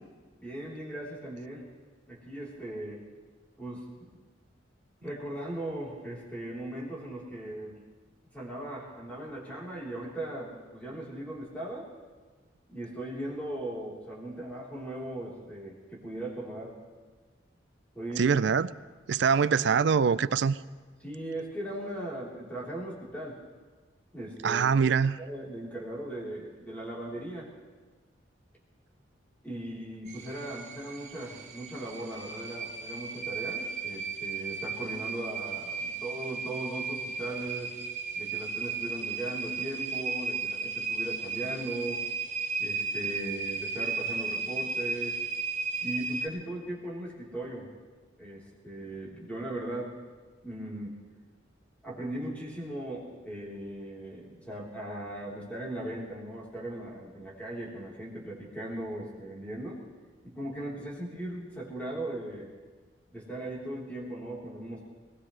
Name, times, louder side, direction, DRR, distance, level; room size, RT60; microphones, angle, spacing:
voice 1, 0.4-1.7 2.1-3.0 3.6-4.2 5.0-7.8 8.3-11.9 12.7-16.8 17.9-18.3 21.0-23.4 24.1-27.5 29.4-37.8 38.2-42.0 42.6-45.2 45.8-47.7 48.2-50.0 50.4-51.0 51.8-59.8 60.2-62.5 63.1-64.8, right 1 dB, 10° left, 3.8 m, -38 dB
voice 2, 18.2-18.7 19.1-20.6 24.4-25.2, right 6 dB, 65° right, 0.4 m, -24 dB
sound 1, 30.1-46.3, right 4 dB, 40° right, 1.4 m, -35 dB
21.0 x 19.5 x 3.3 m
head